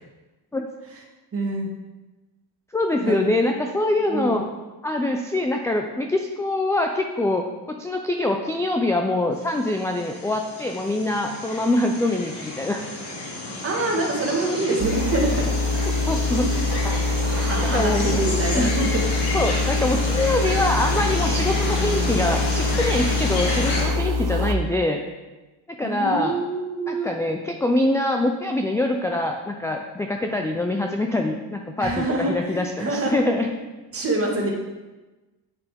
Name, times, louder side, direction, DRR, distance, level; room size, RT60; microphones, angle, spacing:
voice 1, 1.3-1.7 3.0-3.2 4.1-4.4 13.6-15.5 16.3-16.5 17.3-19.0 25.8-27.1 31.8-33.2 33.9-34.5, right 2 dB, 35° right, 0 dB, 1.5 m, -25 dB
voice 2, 2.7-4.4 4.8-12.8 15.8-16.5 16.8-17.0 17.6-18.2 18.5-18.7 19.3-25.0 25.8-26.4 26.9-33.5, left 1 dB, 10° left, 3 dB, 0.3 m, -24 dB
sound 1, 9.4-23.8, left 1 dB, 70° left, 2.1 m, -30 dB
sound 2, 14.8-24.5, left 3 dB, 65° right, 0.7 m, -24 dB
8.4 x 6.7 x 3.5 m, 1.2 s
cardioid pair, 135°, 41 cm